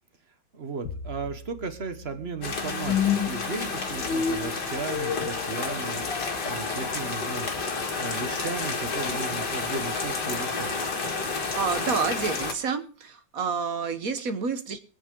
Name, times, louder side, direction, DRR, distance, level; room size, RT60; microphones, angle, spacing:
voice 1, 0.5-10.7, right 4 dB, 35° right, 9 dB, 1.3 m, -36 dB
sound 1, 0.8-10.0, left 7 dB, 80° left, 1.8 m, -33 dB
sound 2, 2.4-12.5, left 4 dB, 60° left, 2.6 m, -30 dB
voice 2, 11.3-14.8, right 5 dB, 50° right, 9 dB, 1.4 m, -29 dB
23.0 x 8.7 x 3.8 m, 0.40 s
omnidirectional pair, 2.0 m